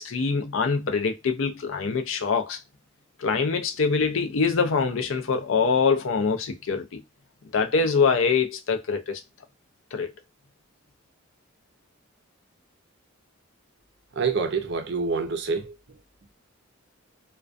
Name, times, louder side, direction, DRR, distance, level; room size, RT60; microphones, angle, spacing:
voice 1, 0.0-2.6 3.2-7.0 7.5-9.2 9.9-10.1, left 5 dB, 70° left, 0.5 m, -24 dB
voice 2, 14.2-15.7, right 4 dB, 55° right, 0.5 m, -26 dB
2.3 x 2.2 x 2.4 m
head